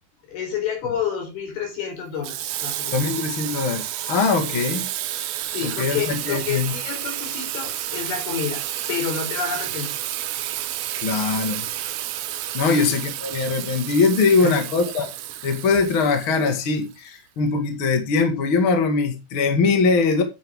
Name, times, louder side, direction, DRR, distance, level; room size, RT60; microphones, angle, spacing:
voice 1, 0.3-3.2 4.5-4.6 5.5-8.6 8.9-9.9 12.7-12.9 14.4-14.6, left 7 dB, 70° left, 6.2 m, -29 dB
Water tap faucet / Sink (filling or washing), 2.2-17.0, right 13 dB, 75° right, 2.6 m, -30 dB
voice 2, 2.9-4.9 5.8-6.7 11.0-11.7 12.5-15.1 15.4-20.2, left 4 dB, 40° left, 2.4 m, -21 dB
9.6 x 9.4 x 3.8 m
omnidirectional pair, 4.5 m